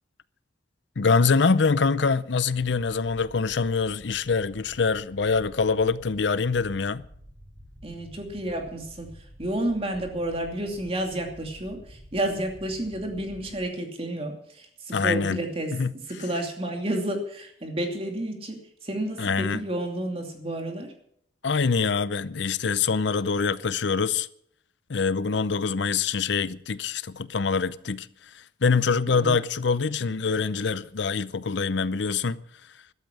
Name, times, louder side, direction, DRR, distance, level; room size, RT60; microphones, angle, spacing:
voice 1, 1.0-7.0 14.9-15.4 15.7-15.9 19.2-19.6 21.4-24.3 24.9-28.1 28.6-32.4, left 5 dB, 70° left, 0.6 m, -24 dB
sound 1, 2.5-13.7, equal, 15° right, 5.8 m, -49 dB
voice 2, 7.8-20.9 29.1-29.4, right 1 dB, 30° right, 2.7 m, -31 dB
13.5 x 12.5 x 6.3 m
head